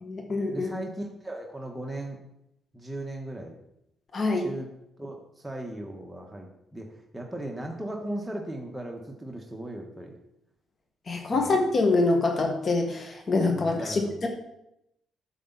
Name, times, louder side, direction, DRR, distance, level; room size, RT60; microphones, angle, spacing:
voice 1, 0.0-0.7 4.1-4.5 11.1-14.3, left 3 dB, 40° left, 3 dB, 1.6 m, -25 dB
voice 2, 0.5-2.2 2.7-3.6 4.4-4.7 5.0-10.1 11.3-11.5 13.6-14.1, right 1 dB, 5° right, 0 dB, 1.3 m, -37 dB
8.4 x 7.0 x 4.0 m, 0.81 s
cardioid pair, 90°, 0 cm